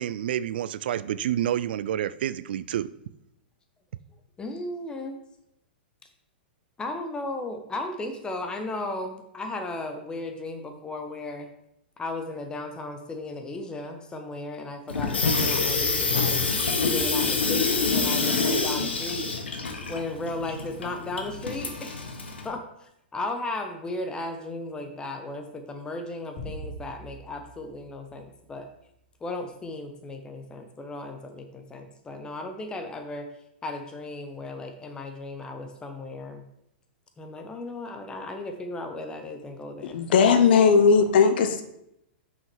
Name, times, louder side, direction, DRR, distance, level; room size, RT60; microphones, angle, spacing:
voice 1, 0.0-2.9, right 11 dB, 65° right, 16 dB, 0.4 m, -28 dB
voice 2, 4.4-5.2 6.8-11.5 12.0-16.4 16.8-19.3 19.9-28.7 29.2-33.3 33.6-36.4 37.2-41.0, left 2 dB, 15° left, 5 dB, 1.1 m, -35 dB
Water tap faucet / Sink (filling or washing), 14.9-22.5, left 4 dB, 90° left, 1.2 m, -26 dB
sound 1, 26.4-28.9, right 1 dB, 40° left, 3.0 m, -43 dB
voice 3, 39.9-41.6, left 5 dB, 65° left, 8 dB, 0.9 m, -18 dB
5.9 x 5.6 x 4.7 m, 0.79 s
hypercardioid pair, 115°, 6 cm